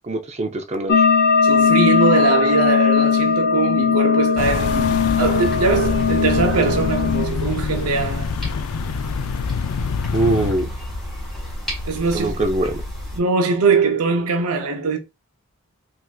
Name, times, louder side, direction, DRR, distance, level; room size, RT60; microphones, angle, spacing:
voice 1, 0.0-1.0 10.1-10.7 12.1-12.8, right 2 dB, 30° right, 0.5 m, -23 dB
sound 1, 0.9-7.3, left 6 dB, 45° left, 0.6 m, -18 dB
voice 2, 1.4-8.3 11.9-12.4 13.2-15.0, right 4 dB, 90° right, 0.6 m, -21 dB
sound 2, 4.4-10.5, left 5 dB, 85° left, 0.4 m, -26 dB
sound 3, 4.7-13.2, left 1 dB, ahead, 1.5 m, -32 dB
4.0 x 2.6 x 2.3 m
head